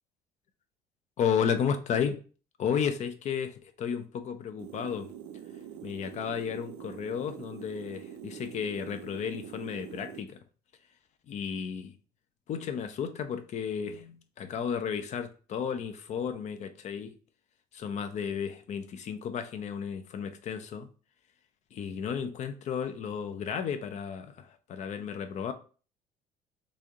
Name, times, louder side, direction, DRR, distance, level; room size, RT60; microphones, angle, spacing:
voice 1, 1.2-2.2 2.6-5.1 5.8-10.4 11.3-11.9 12.5-17.1 17.7-20.9 21.7-25.5, left 7 dB, 50° left, 0.6 m, -33 dB
sound 1, 4.6-10.2, right 9 dB, 80° right, 0.4 m, -45 dB
3.1 x 2.6 x 3.5 m
supercardioid pair, 75°, 15 cm